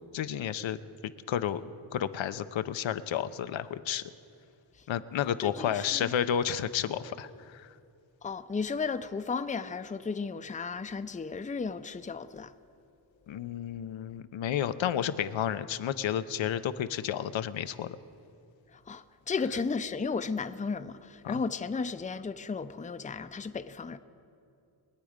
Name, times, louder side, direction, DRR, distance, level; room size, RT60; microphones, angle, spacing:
voice 1, 0.1-4.1 4.9-7.7 13.3-18.0 21.2-21.4, left 9 dB, 75° left, 12 dB, 0.7 m, -31 dB
voice 2, 5.4-6.1 8.2-12.5 18.9-24.0, left 4 dB, 15° left, 11 dB, 0.6 m, -34 dB
23.5 x 8.4 x 5.1 m, 2.6 s
cardioid pair, 75°, 46 cm